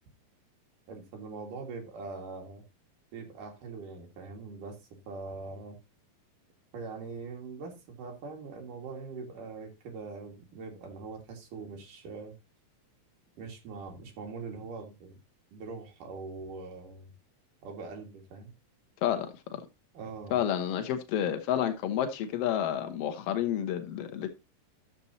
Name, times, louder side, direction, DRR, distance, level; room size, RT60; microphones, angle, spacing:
voice 1, 0.9-2.6 3.1-4.8 5.1-5.8 6.7-12.3 13.4-15.1 15.5-17.1 17.6-18.5 19.9-20.4, right 4 dB, 65° right, 3.4 m, -42 dB
voice 2, 19.0-19.3 20.3-24.3, left 10 dB, 85° left, 1.3 m, -30 dB
12.5 x 7.1 x 2.7 m
omnidirectional pair, 4.1 m